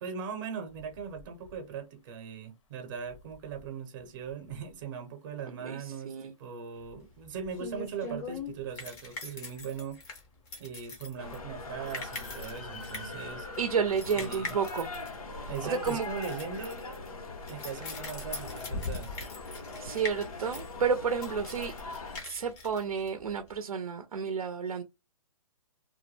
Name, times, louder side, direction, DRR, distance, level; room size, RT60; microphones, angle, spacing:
voice 1, 0.0-10.0 10.6-13.5 14.1-14.5 15.5-16.9 17.4-19.1, right 6 dB, 35° right, 0.6 m, -39 dB
sound 1, 0.7-19.3, left 4 dB, 55° left, 0.7 m, -50 dB
voice 2, 5.5-6.3 13.6-14.9 15.3-16.1 19.8-21.7 22.2-24.8, right 6 dB, 90° right, 0.5 m, -31 dB
sound 2, 6.8-23.5, left 3 dB, 15° left, 0.5 m, -43 dB
sound 3, 11.2-22.2, left 3 dB, 85° left, 0.9 m, -41 dB
2.2 x 2.1 x 3.1 m
hypercardioid pair, 150°, 18 cm